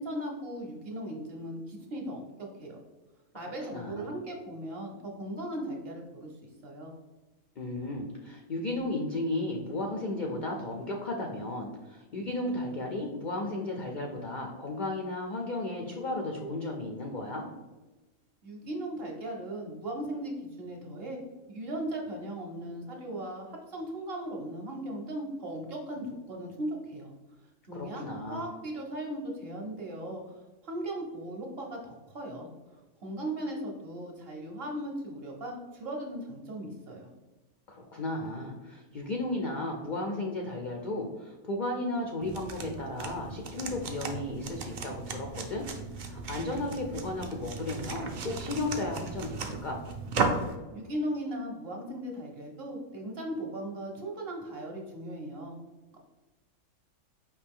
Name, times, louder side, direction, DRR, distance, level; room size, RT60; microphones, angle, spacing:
voice 1, 0.0-2.8 3.3-6.3 6.6-6.9 18.4-21.2 21.5-27.1 27.7-28.0 28.3-37.1 50.7-55.6 55.9-56.0, right 1 dB, 50° right, 0 dB, 0.8 m, -38 dB
voice 2, 3.7-4.2 7.6-17.5 27.7-28.5 37.7-45.6 45.9-49.8, left 2 dB, 70° left, 1 dB, 0.4 m, -34 dB
sound 1, 42.2-50.6, right 4 dB, 70° right, 0.4 m, -36 dB
4.9 x 2.9 x 3.5 m, 1.1 s
omnidirectional pair, 1.5 m